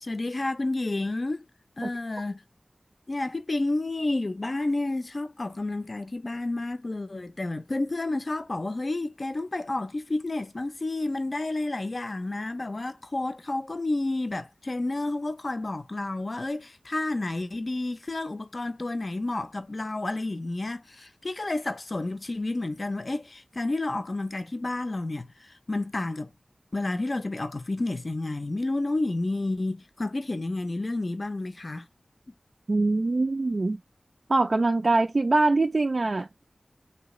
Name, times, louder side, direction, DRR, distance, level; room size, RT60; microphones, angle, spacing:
voice 1, 0.0-1.5 1.8-2.4 3.1-26.3 26.7-31.9, left 2 dB, 50° left, 0.5 m, -30 dB
voice 2, 32.7-33.8 34.3-36.4, right 2 dB, 60° right, 0.3 m, -23 dB
3.2 x 2.8 x 3.0 m
wide cardioid pair, 55°, 0 cm